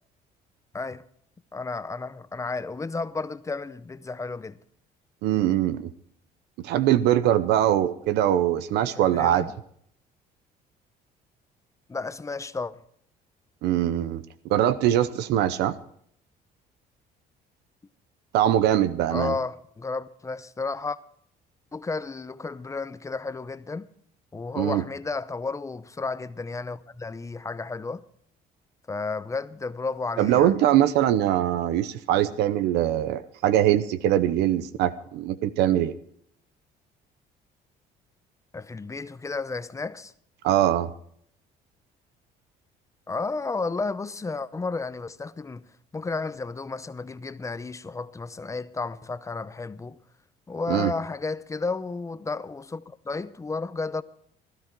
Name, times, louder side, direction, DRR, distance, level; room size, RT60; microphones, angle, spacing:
voice 1, 1.5-4.6 9.0-9.5 11.9-12.7 19.1-21.0 21.7-23.9 24.3-28.0 28.9-30.5 38.5-40.1 43.1-45.6 45.9-50.0 50.5-54.0, left 3 dB, 20° left, 0.7 m, -32 dB
voice 2, 5.2-5.9 6.6-9.5 13.6-14.2 14.5-15.8 18.3-19.3 24.6-24.8 30.2-35.9 40.4-40.9 50.7-50.9, right 12 dB, 85° right, 0.8 m, -22 dB
16.5 x 12.5 x 4.6 m
cardioid pair, 110°, 17 cm